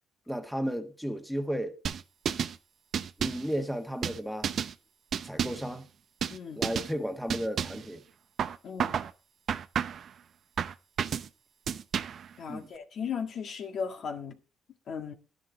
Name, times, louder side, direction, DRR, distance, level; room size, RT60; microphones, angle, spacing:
voice 1, 0.3-1.8 3.2-4.5 5.2-5.9 6.5-8.0 12.5-12.7, equal, ahead, 1.6 m, -33 dB
sound 1, 1.8-2.6 2.9-3.5 4.0-4.7 5.1-5.7 6.2-6.4 6.6-6.9 7.3-7.9 8.4-9.1 9.5-10.1 10.6-11.3 11.7-12.3, right 8 dB, 55° right, 0.7 m, -31 dB
voice 2, 6.3-6.6 8.6-8.9 12.4-14.4 14.9-15.1, left 6 dB, 60° left, 1.7 m, -36 dB
11.0 x 10.5 x 4.0 m
cardioid pair, 90°, 0 cm